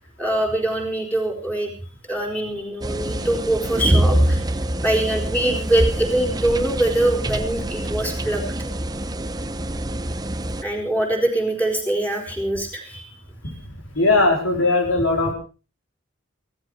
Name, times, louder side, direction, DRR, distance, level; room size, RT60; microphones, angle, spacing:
voice 1, 0.2-1.7 2.1-4.4 4.8-8.4 10.6-13.1, right 1 dB, 10° left, 1 dB, 4.6 m, -23 dB
sound 1, 2.8-10.6, right 1 dB, 20° right, 0.8 m, -24 dB
voice 2, 13.9-15.3, left 2 dB, 90° left, 3 dB, 4.0 m, -19 dB
16.5 x 14.0 x 4.9 m, 0.35 s
head